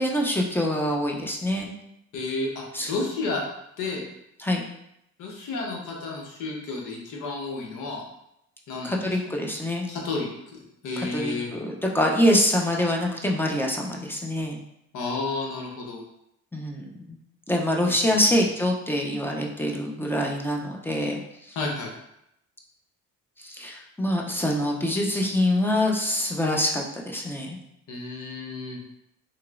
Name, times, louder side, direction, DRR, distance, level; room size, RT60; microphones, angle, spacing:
voice 1, 0.0-1.7 2.7-2.9 4.4-4.6 8.8-9.9 11.0-14.6 16.5-17.2 17.5-21.6 23.4-27.6, left 1 dB, 5° left, -1 dB, 0.5 m, -25 dB
voice 2, 2.1-3.4 3.8-4.0 5.2-8.0 8.7-9.0 9.9-11.5 14.9-16.0 17.8-17.9 21.5-21.9 27.9-28.8, left 3 dB, 80° left, 0 dB, 0.9 m, -31 dB
3.0 x 2.9 x 2.4 m, 0.78 s
cardioid pair, 90°, 30 cm